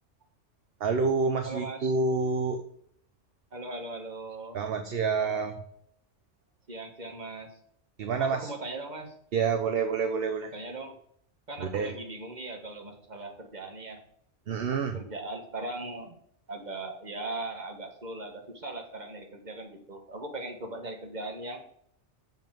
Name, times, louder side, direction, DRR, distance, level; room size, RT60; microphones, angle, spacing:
voice 1, 0.8-2.6 4.5-5.6 8.0-8.5 9.3-10.5 11.6-11.9 14.5-15.0, right 4 dB, 55° right, 6 dB, 1.0 m, -28 dB
voice 2, 1.4-1.9 3.5-4.6 6.7-7.6 8.2-9.1 10.4-11.0 11.5-14.0 14.7-16.2 16.5-21.6, right 2 dB, 40° right, 4 dB, 1.6 m, -39 dB
7.1 x 5.7 x 7.5 m, 0.68 s
omnidirectional pair, 1.2 m